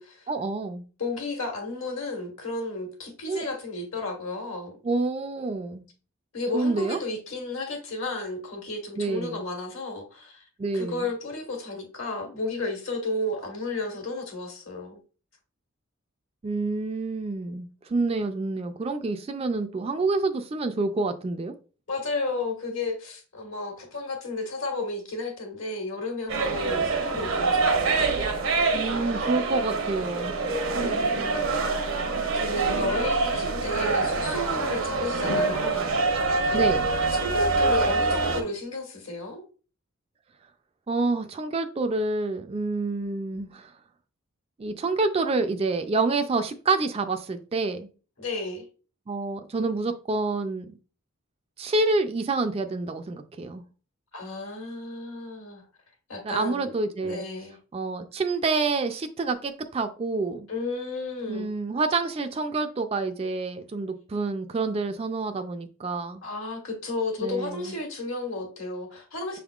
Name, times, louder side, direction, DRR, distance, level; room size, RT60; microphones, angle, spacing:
voice 1, 0.3-0.8 3.3-3.4 4.8-5.9 6.5-7.0 9.0-9.5 10.6-11.1 16.4-21.5 28.7-30.4 36.5-36.9 40.9-43.7 44.6-47.9 49.1-50.7 51.6-53.6 56.2-57.2 57.7-60.5 61.3-66.2 67.2-67.8, right 3 dB, 30° right, 0.3 m, -28 dB
voice 2, 1.0-4.8 6.3-10.5 10.7-15.0 21.9-28.1 30.7-31.9 32.3-35.9 36.5-36.6 37.2-39.4 48.2-48.6 54.1-55.6 56.1-56.7 57.0-57.6 60.5-61.5 66.2-69.4, left 2 dB, 70° left, 1.5 m, -33 dB
sound 1, 26.3-38.4, right 3 dB, 75° right, 0.8 m, -25 dB
6.2 x 3.5 x 2.4 m
head